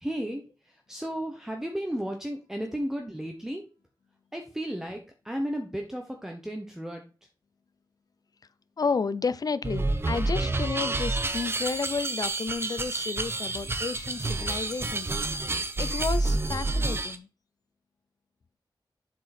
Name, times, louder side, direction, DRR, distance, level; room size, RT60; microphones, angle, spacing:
voice 1, 0.0-3.7 4.3-7.1, equal, 5° right, 1.0 m, -34 dB
voice 2, 8.8-15.1 15.8-17.3, left 5 dB, 50° left, 0.5 m, -31 dB
sound 1, 9.6-17.2, right 2 dB, 30° right, 0.8 m, -29 dB
7.5 x 4.7 x 4.3 m
wide cardioid pair, 110°, 8 cm